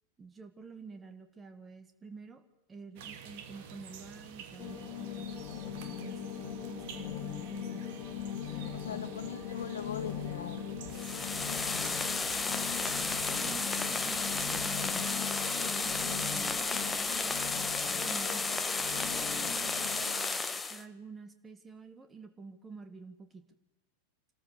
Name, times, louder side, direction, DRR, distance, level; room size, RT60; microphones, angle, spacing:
voice 1, 0.2-2.4 2.7-5.3 6.0-7.9 13.2-15.1 15.6-17.4 18.0-18.6 19.0-19.7 20.5-23.5, right 4 dB, 15° right, 1.9 m, -49 dB
sound 1, 3.0-14.9, right 7 dB, 50° right, 2.2 m, -49 dB
sound 2, 4.6-20.1, left 9 dB, 35° left, 2.3 m, -40 dB
voice 2, 8.7-11.9 19.5-20.4, left 7 dB, 65° left, 1.0 m, -43 dB
sound 3, 10.9-20.8, left 3 dB, 10° left, 1.2 m, -33 dB
27.0 x 14.0 x 7.0 m
figure-of-eight pair, 90°, 0 cm